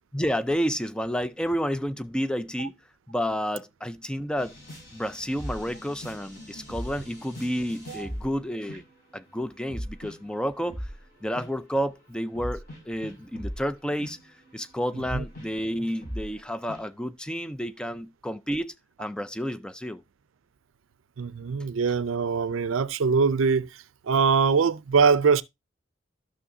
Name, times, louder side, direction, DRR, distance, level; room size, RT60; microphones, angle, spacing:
voice 1, 0.1-2.7 3.1-4.5 4.9-8.8 9.1-10.8 11.2-14.2 14.5-18.7 19.0-20.0, equal, 5° left, 0.4 m, -30 dB
sound 1, 4.4-8.4 8.7-9.1 9.5-11.0 11.3-11.6 12.4-16.4 16.7-16.8, equal, 45° left, 5.5 m, -39 dB
voice 2, 21.2-23.7 24.0-25.4, right 5 dB, 90° right, 0.5 m, -23 dB
12.5 x 6.3 x 2.7 m
head